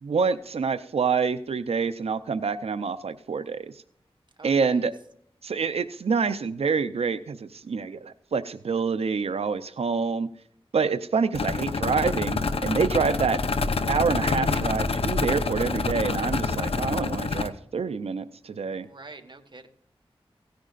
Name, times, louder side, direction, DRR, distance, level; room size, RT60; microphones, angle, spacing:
voice 1, 0.0-3.7 4.4-4.9 5.4-10.3 10.7-13.4 13.9-18.9, right 5 dB, 80° right, 11 dB, 0.6 m, -27 dB
voice 2, 4.4-4.9 18.7-19.7, right 3 dB, 50° right, 5 dB, 1.5 m, -46 dB
sound 1, 11.3-17.5, left 3 dB, 70° left, 0.8 m, -27 dB
17.0 x 10.5 x 2.5 m, 0.67 s
wide cardioid pair, 70°, 10 cm